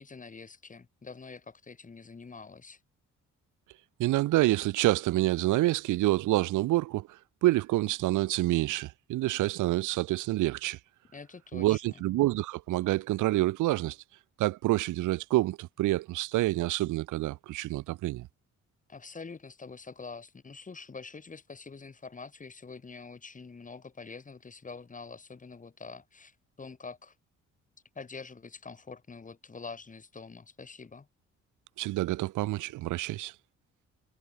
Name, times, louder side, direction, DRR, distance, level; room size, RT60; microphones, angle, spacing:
voice 1, 0.0-2.8 11.1-12.0 18.9-27.2 28.0-31.1, left 4 dB, 25° left, 1.9 m, -45 dB
voice 2, 4.0-10.8 11.5-14.0 14.4-18.3 31.8-33.3, right 17 dB, 85° right, 0.8 m, -27 dB
cardioid pair, 90°, 30 cm